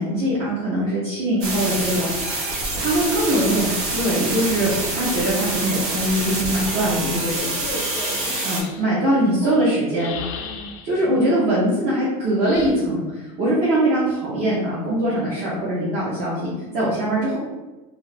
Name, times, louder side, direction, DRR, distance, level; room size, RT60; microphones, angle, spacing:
voice 1, 0.0-2.1 2.8-7.6 8.4-10.1 10.8-17.4, right 1 dB, 40° right, -7 dB, 0.7 m, -22 dB
sound 1, 1.4-8.6, right 2 dB, 85° right, 1.1 m, -26 dB
sound 2, 3.2-5.0 7.6-8.9 9.9-11.0 12.4-12.7, left 6 dB, 75° left, 0.5 m, -38 dB
voice 2, 7.5-8.5 9.2-9.7 10.4-10.7 16.5-16.8, left 1 dB, 25° left, -5 dB, 0.5 m, -36 dB
2.6 x 2.4 x 3.2 m, 1.2 s
supercardioid pair, 175°, 18 cm